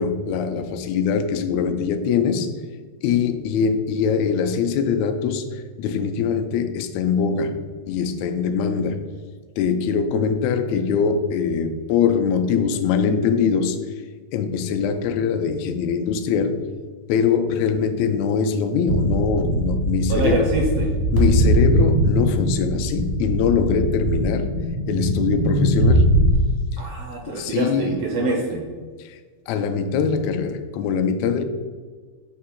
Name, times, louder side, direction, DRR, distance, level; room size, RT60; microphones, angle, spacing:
voice 1, 0.0-2.6 3.0-7.6 7.9-9.1 9.6-13.8 14.3-16.7 17.1-20.5 21.1-24.6 24.9-26.1 26.7-26.8 27.3-28.0 29.0-29.2 29.5-31.4, left 6 dB, 80° left, 7 dB, 1.7 m, -22 dB
sound 1, 18.9-26.3, right 1 dB, 35° right, 0.5 m, -21 dB
voice 2, 20.1-21.0 26.8-28.6, right 3 dB, 75° right, 1 dB, 1.4 m, -25 dB
6.5 x 2.8 x 5.7 m, 1.5 s
omnidirectional pair, 3.4 m